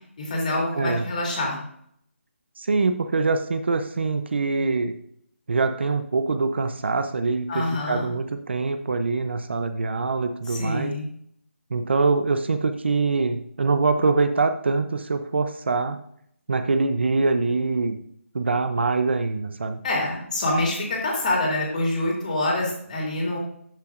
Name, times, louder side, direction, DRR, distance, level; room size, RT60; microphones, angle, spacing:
voice 1, 0.2-1.6 7.5-8.1 10.5-11.1 19.8-23.4, left 1 dB, 35° left, -2 dB, 2.6 m, -26 dB
voice 2, 0.7-1.1 2.6-4.9 5.5-10.9 11.7-16.0 16.5-17.9 18.3-19.8, right 3 dB, 55° right, 8 dB, 0.7 m, -24 dB
13.0 x 5.8 x 2.5 m, 0.69 s
figure-of-eight pair, 170°, 7 cm